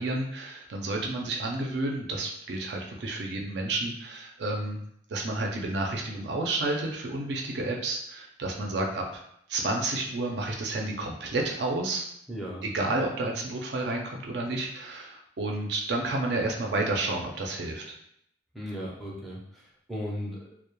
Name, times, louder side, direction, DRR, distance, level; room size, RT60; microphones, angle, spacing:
voice 1, 0.0-4.8 5.1-9.2 9.5-12.1 12.6-17.9, right 2 dB, 65° right, 0 dB, 0.4 m, -30 dB
voice 2, 12.3-12.6 18.5-19.6 19.9-20.5, equal, ahead, -5 dB, 0.4 m, -36 dB
2.2 x 2.0 x 2.9 m, 0.71 s
head